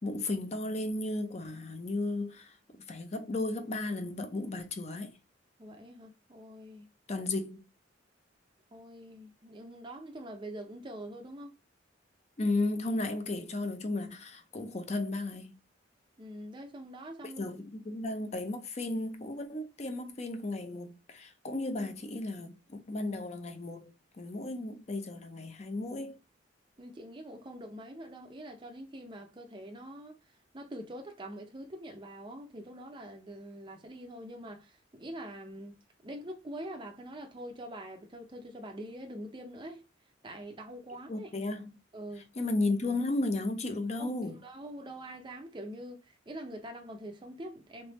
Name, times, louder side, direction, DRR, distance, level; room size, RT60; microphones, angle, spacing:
voice 1, 0.0-2.5 2.9-5.1 7.1-7.7 12.4-15.5 17.4-26.2 41.1-41.7 42.4-44.4, left 2 dB, 35° left, 0.6 m, -34 dB
voice 2, 5.6-6.9 8.7-11.5 16.2-17.6 18.0-18.1 26.8-30.2 30.5-39.8 40.2-41.3 41.9-42.3 44.0-47.9, right 1 dB, 25° right, 0.5 m, -44 dB
3.3 x 3.1 x 3.0 m
head